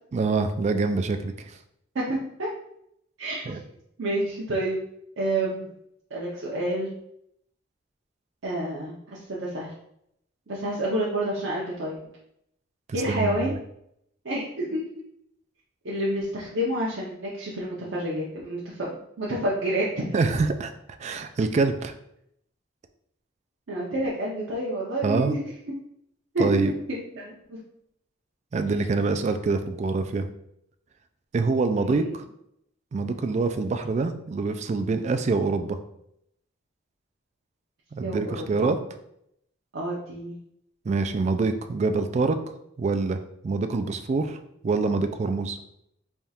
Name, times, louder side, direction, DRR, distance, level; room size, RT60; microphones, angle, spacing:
voice 1, 0.1-1.5 3.5-3.6 12.9-13.4 20.1-20.7 21.0-21.9 25.0-25.4 26.4-26.7 28.5-30.3 31.3-32.2 32.9-35.8 37.9-38.8 40.9-42.4 42.8-44.4 44.6-45.6, right 3 dB, 35° right, 9 dB, 0.3 m, -25 dB
voice 2, 1.9-2.5 3.2-3.6 4.0-4.8 5.2-5.6 6.1-6.9 8.4-9.7 10.5-12.0 12.9-13.5 14.2-14.9 15.8-18.9 19.2-19.9 23.7-25.4 25.7-25.8 26.3-27.6 31.8-32.1 38.0-38.7 39.7-40.4, right 1 dB, 85° right, -5 dB, 0.7 m, -29 dB
3.5 x 2.4 x 4.1 m, 0.75 s
head